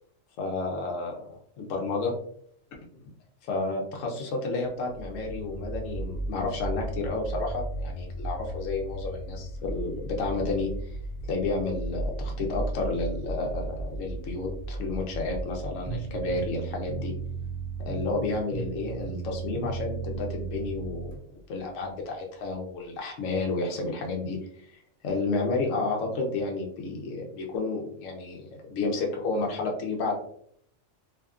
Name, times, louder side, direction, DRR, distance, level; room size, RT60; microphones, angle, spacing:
voice 1, 0.4-2.1 3.4-10.7 11.3-17.1 17.8-21.1 21.5-30.2, left 3 dB, 75° left, 1 dB, 1.0 m, -31 dB
sound 1, 4.9-21.9, right 1 dB, 55° left, 1.4 m, -36 dB
sound 2, 15.8-21.2, right 5 dB, 45° right, 0.5 m, -35 dB
2.7 x 2.5 x 2.3 m, 0.65 s
omnidirectional pair, 1.4 m